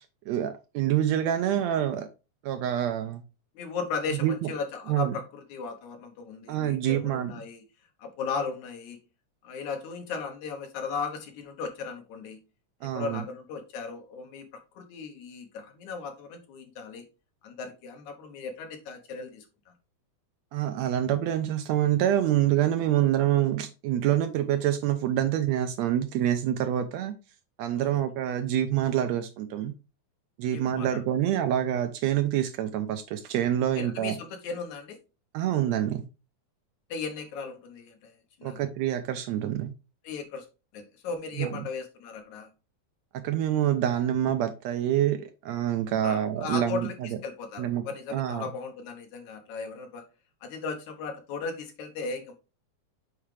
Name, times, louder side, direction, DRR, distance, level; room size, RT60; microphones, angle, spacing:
voice 1, 0.3-2.1 2.4-3.2 4.2-4.5 4.9-5.1 6.5-7.3 12.8-13.2 20.5-27.1 27.6-29.7 30.4-34.1 35.3-36.1 38.4-39.7 41.4-41.6 43.2-47.1 47.6-47.8 48.1-48.5, right 11 dB, 80° right, 1.6 m, -26 dB
voice 2, 3.6-7.6 8.0-9.0 9.4-12.4 12.9-14.5 14.7-17.0 17.4-19.7 27.8-27.9 30.5-31.0 33.8-35.0 36.9-38.6 40.0-40.5 40.7-42.5 46.0-50.0 50.4-52.3, left 5 dB, 70° left, 2.5 m, -36 dB
7.2 x 4.7 x 3.2 m
omnidirectional pair, 3.6 m